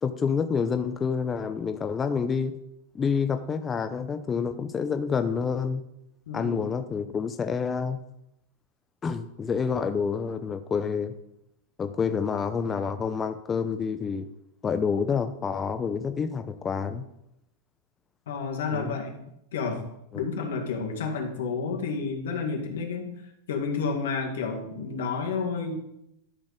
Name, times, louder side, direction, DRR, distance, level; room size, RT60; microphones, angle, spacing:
voice 1, 0.0-2.6 2.9-5.8 6.3-8.0 9.0-11.1 11.8-14.3 14.6-17.0 18.7-18.9, left 6 dB, 20° left, 8 dB, 0.5 m, -28 dB
voice 2, 6.3-6.6 18.3-19.2 19.5-19.8 20.1-23.1 23.5-25.7, left 5 dB, 80° left, 2 dB, 1.8 m, -30 dB
12.0 x 4.1 x 5.0 m, 0.82 s
supercardioid pair, 135°, 0 cm